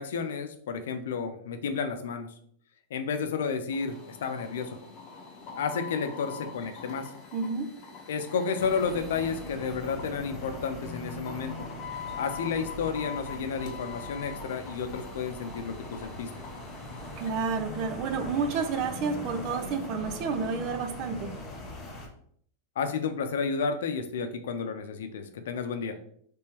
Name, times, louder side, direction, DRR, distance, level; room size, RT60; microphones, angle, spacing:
voice 1, 0.0-2.3 2.9-4.8 5.6-7.1 8.1-11.7 12.2-16.3 22.8-26.0, left 5 dB, 85° left, 8 dB, 0.6 m, -31 dB
sound 1, 3.7-17.3, left 5 dB, 40° left, 0.9 m, -44 dB
voice 2, 7.3-7.7 17.2-21.4, right 5 dB, 45° right, 8 dB, 0.5 m, -30 dB
sound 2, 8.6-22.1, left 1 dB, 20° left, 1.0 m, -41 dB
3.5 x 3.4 x 2.9 m, 0.63 s
supercardioid pair, 145°, 0 cm